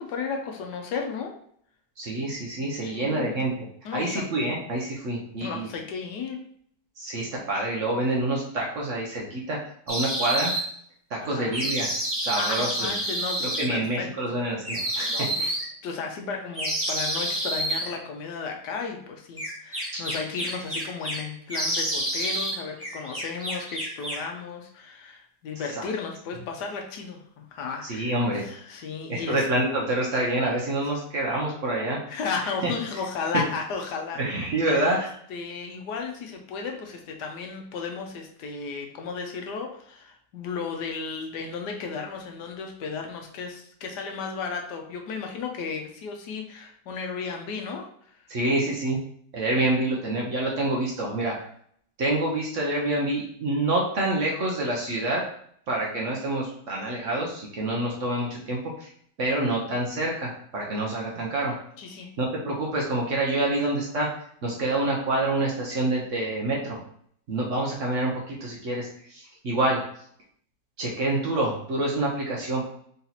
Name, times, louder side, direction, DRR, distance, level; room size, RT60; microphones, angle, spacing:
voice 1, 0.0-1.3 2.8-3.4 3.8-4.3 5.4-6.4 11.2-11.6 12.4-14.4 15.1-29.5 32.1-34.2 34.7-35.0 35.3-48.3 61.8-62.1, left 5 dB, 75° left, 2 dB, 1.3 m, -34 dB
voice 2, 2.0-3.7 3.9-5.7 7.0-9.6 9.9-10.5 11.1-12.9 13.4-15.5 19.9-20.0 25.8-25.9 27.9-28.4 29.1-32.0 32.6-32.7 34.2-35.1 48.3-49.0 49.3-51.4 52.0-55.2 55.7-58.9 59.2-61.5 62.2-64.1 64.4-66.8 67.3-69.8 70.8-72.6, right 2 dB, 55° right, -2 dB, 1.0 m, -27 dB
sound 1, 9.9-10.6 11.5-13.6 14.6-15.7 16.5-17.9 19.4-21.2 21.5-22.6 22.8-24.3, right 1 dB, 10° right, 1.1 m, -29 dB
4.0 x 2.8 x 4.0 m, 0.63 s
omnidirectional pair, 1.9 m